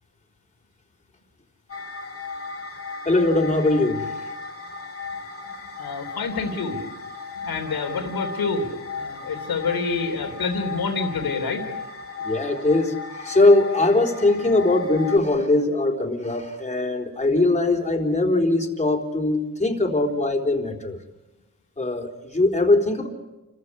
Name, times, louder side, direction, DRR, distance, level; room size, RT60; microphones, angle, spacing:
sound 1, 1.7-15.2, left 4 dB, 40° left, 2.9 m, -35 dB
voice 1, 3.0-4.3 12.2-21.0 21.8-23.1, left 2 dB, 20° left, 1 dB, 3.9 m, -21 dB
voice 2, 5.8-6.8 7.4-8.7 9.0-11.7, left 4 dB, 85° left, 4 dB, 3.4 m, -27 dB
29.5 x 14.5 x 9.9 m, 1.1 s
wide cardioid pair, 90°, 35 cm